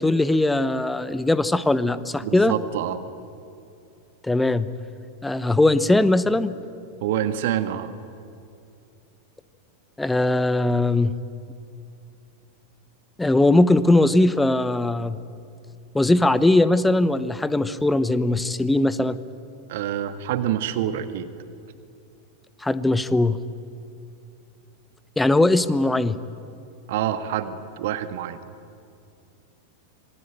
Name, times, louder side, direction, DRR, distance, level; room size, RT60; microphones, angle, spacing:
voice 1, 0.0-2.5 4.2-4.7 5.2-6.5 10.0-11.1 13.2-15.2 15.9-19.2 22.6-23.4 25.2-26.2, left 2 dB, 5° left, 15 dB, 0.9 m, -20 dB
voice 2, 2.2-3.0 7.0-7.9 19.7-21.3 26.9-28.4, right 11 dB, 55° right, 10 dB, 1.6 m, -26 dB
27.0 x 20.5 x 9.1 m, 2.5 s
figure-of-eight pair, 90°, 0 cm